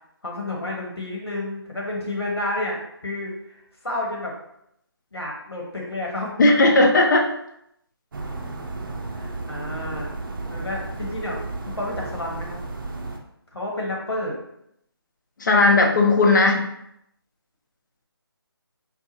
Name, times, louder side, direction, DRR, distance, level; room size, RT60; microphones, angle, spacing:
voice 1, 0.2-2.8 3.0-4.3 5.1-6.3 9.1-10.1 10.5-11.4 11.6-12.6 13.5-14.4, left 1 dB, 85° left, -2 dB, 1.5 m, -30 dB
voice 2, 6.4-7.3 15.4-16.6, left 2 dB, 50° left, 2 dB, 0.7 m, -16 dB
sound 1, 8.1-13.2, right 2 dB, 55° right, 0.6 m, -33 dB
4.7 x 2.5 x 2.8 m, 0.76 s
figure-of-eight pair, 155°, 13 cm